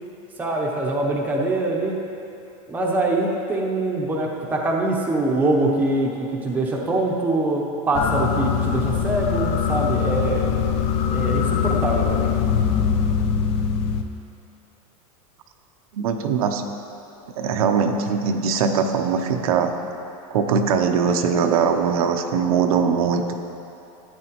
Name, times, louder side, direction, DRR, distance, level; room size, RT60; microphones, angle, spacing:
voice 1, 0.4-1.9 2.7-10.5 11.1-12.3, right 2 dB, 10° right, -2 dB, 0.8 m, -23 dB
sound 1, 7.9-14.0, left 7 dB, 35° left, 0.5 m, -22 dB
voice 2, 15.9-16.6 17.4-19.7 20.3-23.3, right 6 dB, 85° right, 5 dB, 0.7 m, -21 dB
13.5 x 8.6 x 3.0 m, 2.9 s
supercardioid pair, 160°, 18 cm